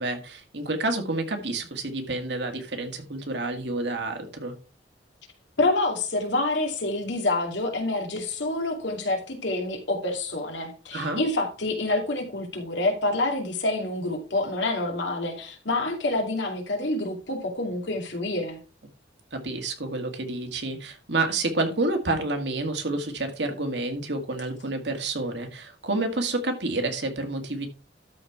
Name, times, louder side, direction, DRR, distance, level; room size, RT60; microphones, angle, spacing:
voice 1, 0.0-4.5 10.9-11.2 19.3-27.7, right 2 dB, 70° right, 5 dB, 1.9 m, -29 dB
voice 2, 5.6-18.6, left 2 dB, 80° left, 3 dB, 2.6 m, -27 dB
13.0 x 4.4 x 4.6 m, 0.34 s
head